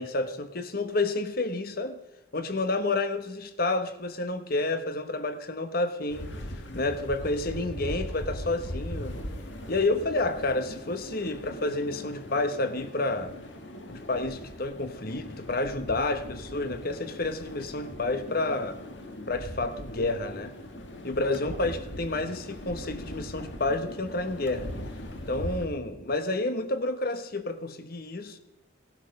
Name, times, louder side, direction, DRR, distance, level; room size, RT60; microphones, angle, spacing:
voice 1, 0.0-2.0 2.3-6.3 6.7-9.2 9.7-13.3 13.9-18.8 19.3-20.5 21.0-24.7 25.3-28.4, left 2 dB, 50° left, 10 dB, 1.2 m, -30 dB
sound 1, 6.1-25.7, left 1 dB, 75° left, 1.9 m, -40 dB
17.0 x 12.0 x 5.3 m, 0.93 s
head